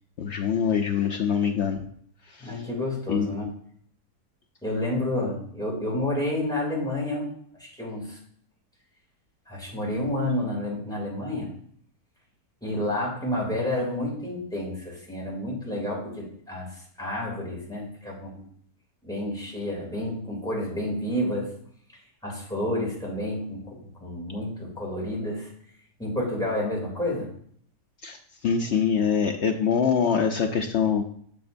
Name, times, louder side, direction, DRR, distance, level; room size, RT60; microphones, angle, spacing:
voice 1, 0.2-1.8 2.3-2.7 3.1-3.3 28.0-28.2 28.4-31.0, left 7 dB, 80° left, 4 dB, 0.6 m, -24 dB
voice 2, 2.4-3.5 4.6-7.3 7.6-8.2 9.5-11.5 12.6-18.5 19.0-21.5 22.2-25.5 26.0-27.3, left 1 dB, ahead, -4 dB, 2.6 m, -30 dB
7.2 x 6.9 x 2.6 m, 0.63 s
omnidirectional pair, 1.7 m